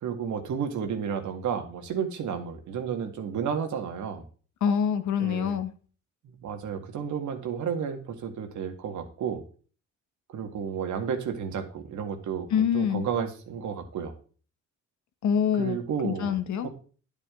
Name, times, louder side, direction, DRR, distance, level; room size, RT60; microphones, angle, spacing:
voice 1, 0.0-4.2 5.2-5.6 6.2-9.4 10.3-12.5 12.7-14.1 15.6-16.3, right 7 dB, 75° right, 6 dB, 2.0 m, -32 dB
voice 2, 4.6-5.7 12.5-13.0 15.2-15.8 16.0-16.7, left 8 dB, 70° left, 10 dB, 1.3 m, -25 dB
10.0 x 8.9 x 3.8 m, 0.40 s
cardioid pair, 90°, 30 cm